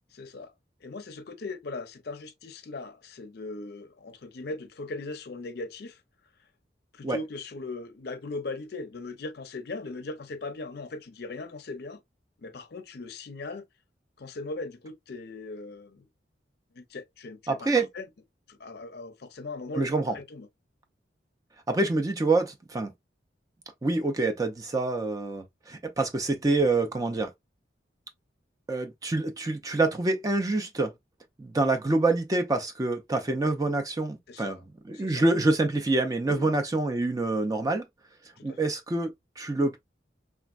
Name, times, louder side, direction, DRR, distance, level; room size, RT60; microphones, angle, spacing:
voice 1, 0.1-0.5 0.8-6.0 6.9-12.0 12.4-13.6 14.2-16.1 16.7-18.1 18.5-19.9 20.1-20.5 34.3-34.6 34.9-35.2 36.3-36.5 38.4-38.7, left 3 dB, 60° left, 0.5 m, -39 dB
voice 2, 17.5-17.9 19.7-20.2 21.7-22.9 23.8-27.3 28.7-30.9 31.4-34.6 34.9-37.8 38.4-39.8, right 2 dB, 20° right, 0.4 m, -26 dB
3.3 x 2.1 x 2.3 m
head